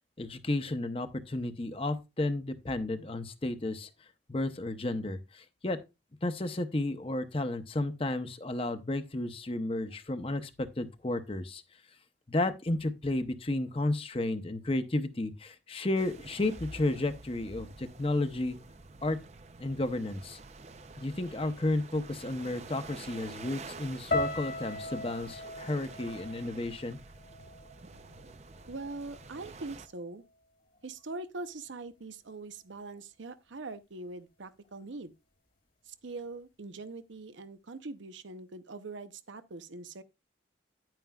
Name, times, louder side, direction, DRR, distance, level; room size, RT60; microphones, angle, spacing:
voice 1, 0.2-3.9 4.3-5.8 6.2-11.6 12.3-18.6 19.0-19.2 19.6-20.4 21.0-27.0, left 2 dB, 30° left, 0.8 m, -32 dB
sound 1, 16.0-29.9, right 3 dB, 35° right, 0.5 m, -49 dB
sound 2, 24.1-28.3 28.6-29.4 29.9-30.2, left 2 dB, 55° left, 1.7 m, -38 dB
voice 2, 28.7-30.2 30.8-35.1 35.9-40.0, right 3 dB, 85° right, 0.8 m, -42 dB
10.0 x 9.1 x 2.3 m
head